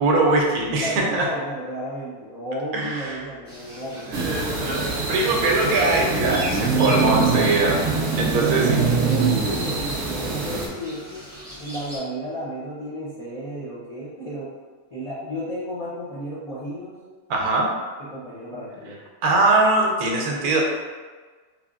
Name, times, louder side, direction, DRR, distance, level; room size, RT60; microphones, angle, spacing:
voice 1, 0.0-1.3 2.7-3.2 3.9-7.8 8.2-8.8 17.3-17.7 19.2-20.6, right 2 dB, 75° right, -1 dB, 1.2 m, -21 dB
voice 2, 0.8-4.2 8.1-8.6 9.0-11.3 11.6-14.5 14.9-16.9 18.0-19.0, right 2 dB, 65° left, -9 dB, 0.3 m, -32 dB
sound 1, 3.5-12.0, equal, 5° left, 1.3 m, -38 dB
sound 2, 4.1-10.7, right 4 dB, 60° right, 0.8 m, -24 dB
3.4 x 3.3 x 2.5 m, 1.4 s
omnidirectional pair, 1.6 m